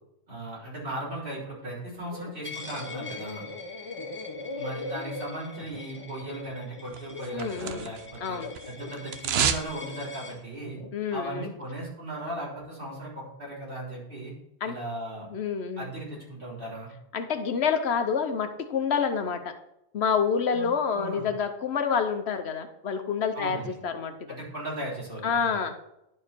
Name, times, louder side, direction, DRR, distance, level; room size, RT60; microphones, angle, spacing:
voice 1, 0.3-3.5 4.6-8.4 8.6-10.8 11.1-14.3 14.6-15.3 15.8-16.9 20.5-21.3 23.3-23.8 24.3-25.5, right 1 dB, 55° right, -6 dB, 3.9 m, -37 dB
sound 1, 2.0-2.4 2.6-7.9 8.4-10.1 10.5-10.9, left 2 dB, 30° left, 0.7 m, -40 dB
Coin (dropping), 2.4-10.4, left 4 dB, 10° left, 1.1 m, -45 dB
sound 2, 6.9-8.2 8.4-9.7 10.0-10.1, right 7 dB, 75° right, 0.9 m, -29 dB
voice 2, 7.3-7.9 8.2-8.5 10.9-11.5 14.6-14.7 15.3-15.9 17.1-19.5 19.9-24.1 25.2-25.7, left 6 dB, 80° left, 8 dB, 1.1 m, -28 dB
11.0 x 4.7 x 4.4 m, 0.86 s
omnidirectional pair, 1.1 m